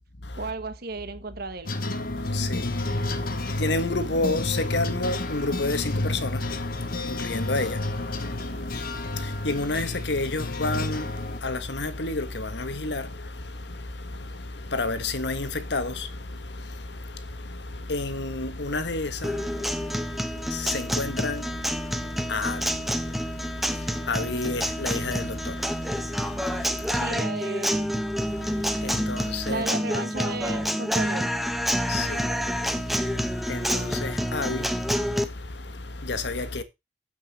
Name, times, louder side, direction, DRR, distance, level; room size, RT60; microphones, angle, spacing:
voice 1, 0.4-1.7 26.9-28.0 29.5-31.3, right 3 dB, 55° right, 1.4 m, -34 dB
sound 1, 1.6-11.4, left 2 dB, 55° left, 1.4 m, -31 dB
voice 2, 2.0-27.2 28.2-29.6 31.7-36.6, left 2 dB, 70° left, 1.5 m, -31 dB
Guitar, 19.2-35.2, equal, ahead, 1.1 m, -28 dB
8.9 x 8.2 x 4.2 m
head